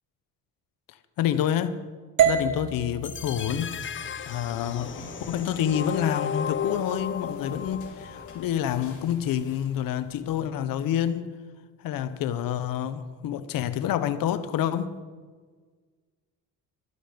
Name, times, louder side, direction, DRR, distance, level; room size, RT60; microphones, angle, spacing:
voice 1, 1.2-1.8 2.2-11.3 11.8-14.9, left 10 dB, 75° left, 1.0 m, -28 dB
sound 1, 2.2-6.3, right 8 dB, 65° right, 1.5 m, -29 dB
sound 2, 3.0-9.0, left 7 dB, 35° left, 0.6 m, -35 dB
sound 3, 4.4-10.3, left 3 dB, 60° left, 4.2 m, -46 dB
15.0 x 12.0 x 5.2 m
cardioid pair, 100°, 34 cm